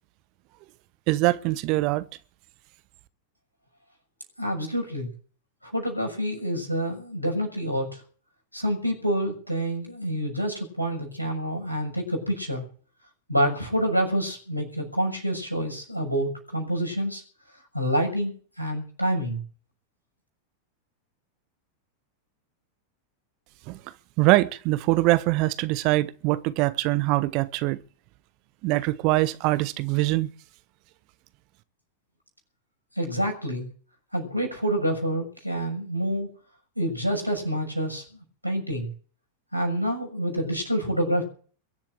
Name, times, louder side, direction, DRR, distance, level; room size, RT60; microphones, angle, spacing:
voice 1, 1.1-2.1 23.7-23.8 24.2-27.8 28.6-30.3, right 19 dB, 45° right, 1.0 m, -23 dB
voice 2, 4.4-5.1 5.6-8.0 8.5-12.7 13.3-17.2 17.7-19.4 32.9-33.7 34.1-36.3 36.7-38.0 38.4-38.9 39.5-41.2, equal, 90° left, 6.5 m, -27 dB
22.5 x 7.5 x 8.0 m
figure-of-eight pair, 90°, 0 cm